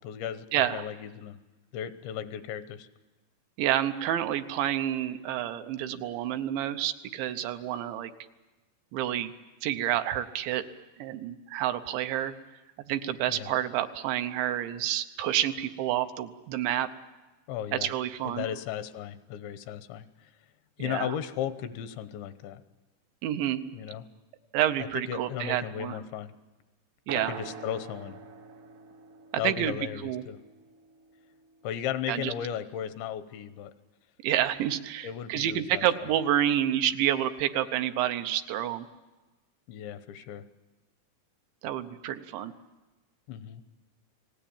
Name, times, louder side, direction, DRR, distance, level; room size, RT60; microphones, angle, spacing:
voice 1, 0.0-1.4 1.7-2.9 13.3-13.5 17.5-17.9 18.2-20.1 20.8-22.6 23.7-24.0 24.8-26.3 27.1-28.2 29.4-30.4 31.6-33.7 35.0-35.9 39.7-40.5 43.3-43.6, left 10 dB, 80° left, 12 dB, 3.2 m, -35 dB
voice 2, 0.5-0.8 3.6-8.1 8.9-9.3 9.6-10.6 11.0-12.3 12.9-16.9 17.7-18.5 20.8-21.2 23.2-23.6 24.5-26.0 27.1-27.4 29.3-30.2 32.1-32.3 34.2-38.9 41.6-42.5, right 11 dB, 80° right, 8 dB, 3.2 m, -29 dB
sound 1, 27.1-31.0, right 5 dB, 60° right, 1.3 m, -45 dB
30.0 x 19.5 x 8.7 m, 1.2 s
omnidirectional pair, 5.3 m